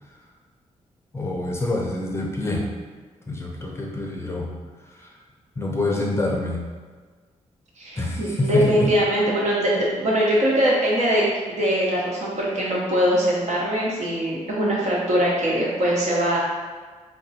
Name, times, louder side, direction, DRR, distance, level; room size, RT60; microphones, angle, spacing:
voice 1, 1.1-2.7 3.3-4.5 5.0-5.1 5.6-6.6 8.0-8.9, left 2 dB, 20° left, -2 dB, 0.5 m, -26 dB
voice 2, 7.8-16.4, equal, 65° right, -5 dB, 1.0 m, -22 dB
3.7 x 2.1 x 4.1 m, 1.5 s
wide cardioid pair, 150°, 12 cm